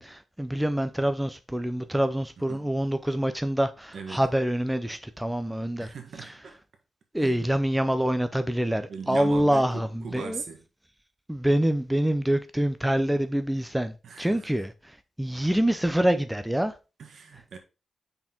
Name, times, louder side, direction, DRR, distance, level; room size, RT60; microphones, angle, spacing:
voice 1, 0.0-5.9 7.1-10.4 11.3-14.7 15.2-16.8, right 1 dB, 5° right, 0.5 m, -26 dB
voice 2, 2.4-2.7 3.9-4.2 5.8-6.6 7.1-7.5 8.9-10.6 14.0-14.6 17.0-17.6, right 5 dB, 65° right, 1.6 m, -40 dB
5.9 x 4.4 x 4.4 m
wide cardioid pair, 150°, 0 cm